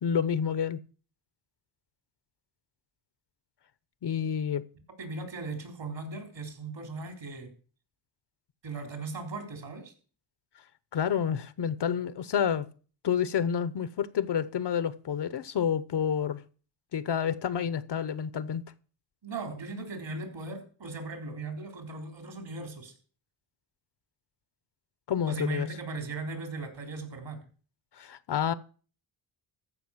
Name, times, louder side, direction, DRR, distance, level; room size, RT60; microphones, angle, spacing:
voice 1, 0.0-0.8 4.0-4.6 10.9-12.7 13.0-16.4 16.9-18.6 25.1-25.7 28.0-28.5, left 8 dB, 60° left, 0.9 m, -29 dB
voice 2, 5.0-7.5 8.6-9.9 19.2-22.9 25.3-27.4, right 3 dB, 65° right, 4.0 m, -38 dB
14.5 x 5.5 x 7.3 m
cardioid pair, 70°, 48 cm